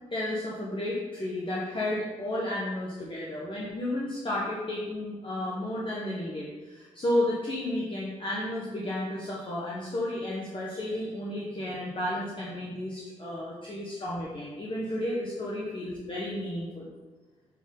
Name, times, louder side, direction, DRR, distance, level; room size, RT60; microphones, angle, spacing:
voice 1, 0.1-16.9, left 1 dB, 35° left, -6 dB, 1.4 m, -32 dB
7.2 x 4.2 x 3.8 m, 1.3 s
cardioid pair, 60°, 14 cm